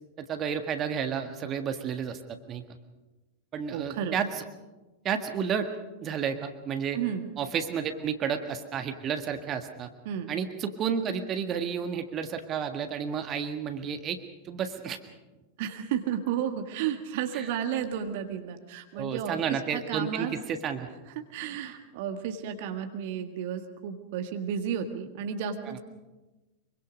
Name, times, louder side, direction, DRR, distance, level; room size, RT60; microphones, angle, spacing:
voice 1, 0.2-2.2 2.5-2.6 3.5-4.4 5.0-5.7 6.0-7.0 7.4-9.9 10.3-14.2 14.4-15.0 17.3-17.5 18.9-20.9 25.6-25.8, right 7 dB, 30° right, 7 dB, 1.7 m, -31 dB
voice 2, 3.7-4.2 6.9-7.3 10.0-10.3 15.6-20.3 21.1-25.8, right 8 dB, 50° right, 6 dB, 1.7 m, -32 dB
25.0 x 24.0 x 5.2 m, 1.1 s
figure-of-eight pair, 90°, 0 cm